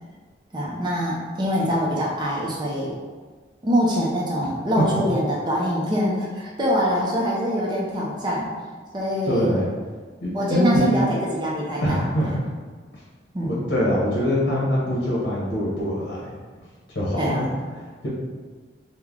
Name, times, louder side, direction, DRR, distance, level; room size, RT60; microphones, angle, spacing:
voice 1, 0.5-3.0 3.6-8.5 8.9-9.6 10.3-12.1 13.3-13.6 17.2-17.6, equal, 25° right, -4 dB, 0.5 m, -24 dB
voice 2, 9.2-9.7 10.2-10.9 11.8-12.5 13.4-16.3 16.9-17.4, equal, 65° left, -6 dB, 0.9 m, -23 dB
3.1 x 2.1 x 3.6 m, 1.5 s
head